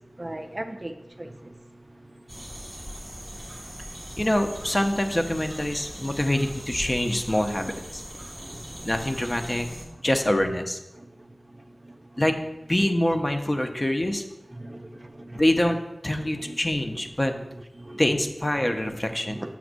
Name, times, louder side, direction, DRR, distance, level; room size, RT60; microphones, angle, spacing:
voice 1, 0.2-1.5 8.5-8.9 11.0-11.1 11.8-12.0 14.6-15.4 16.4-16.6 17.8-18.0 18.7-19.0 19.2-19.6, right 1 dB, 30° right, 0.4 m, -38 dB
sound 1, 2.3-9.9, equal, 15° right, 1.8 m, -40 dB
voice 2, 4.2-8.0 8.8-9.7 10.0-10.8 12.2-12.4 12.7-14.2 15.3-15.8 16.0-17.3 18.0-19.4, left 1 dB, 30° left, 0.7 m, -25 dB
7.6 x 7.0 x 2.6 m
wide cardioid pair, 60°, 0 cm